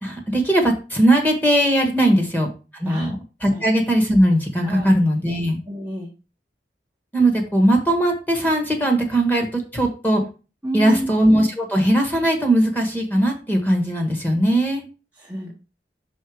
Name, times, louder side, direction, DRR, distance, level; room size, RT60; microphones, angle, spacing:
voice 1, 0.0-2.5 2.8-5.6 7.1-10.2 10.7-14.8, right 1 dB, 10° left, 3 dB, 1.5 m, -19 dB
voice 2, 5.7-6.1 10.6-11.1 15.2-15.5, right 1 dB, 10° right, -3 dB, 0.9 m, -28 dB
5.7 x 3.9 x 4.9 m, 0.32 s
head